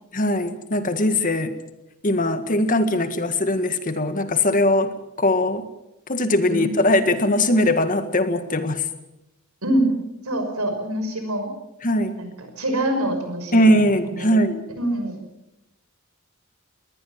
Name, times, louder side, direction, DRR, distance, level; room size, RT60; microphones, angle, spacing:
voice 1, 0.1-1.5 2.0-5.7 6.1-8.9 11.8-12.2 13.5-14.6, left 1 dB, 40° left, 10 dB, 1.8 m, -20 dB
voice 2, 9.6-9.9 10.2-11.5 12.2-12.3 12.6-14.3 14.8-15.2, right 1 dB, 90° right, 6 dB, 5.9 m, -25 dB
21.5 x 19.0 x 7.4 m, 0.88 s
head